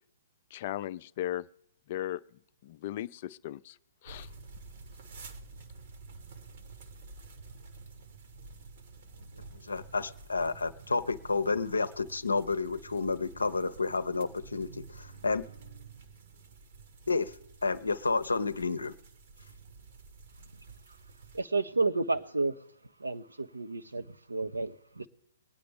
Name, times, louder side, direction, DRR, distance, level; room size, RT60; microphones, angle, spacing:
voice 1, 0.5-1.5 1.9-2.2 2.6-3.8 4.0-4.3, left 12 dB, 45° left, 16 dB, 0.4 m, -36 dB
sound 1, 4.1-21.4, right 4 dB, 55° right, 1.2 m, -50 dB
voice 2, 9.3-15.4 17.1-17.3 17.6-18.9, left 4 dB, 80° left, 13 dB, 0.7 m, -30 dB
voice 3, 21.3-22.5 23.0-25.1, right 3 dB, 85° right, 8 dB, 0.9 m, -31 dB
23.0 x 9.4 x 3.5 m, 0.81 s
figure-of-eight pair, 125°, 0 cm